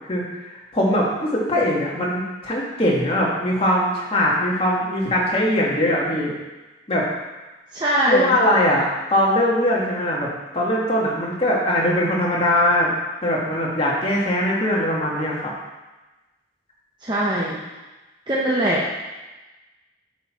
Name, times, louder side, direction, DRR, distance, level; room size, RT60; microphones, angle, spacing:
voice 1, 0.1-6.3 6.9-7.0 8.1-12.9 13.2-15.5, left 1 dB, 30° left, -4 dB, 1.5 m, -21 dB
voice 2, 7.7-8.4 17.0-17.6 18.3-19.0, right 1 dB, 25° right, -6 dB, 0.8 m, -22 dB
8.1 x 4.5 x 4.6 m, 1.1 s
head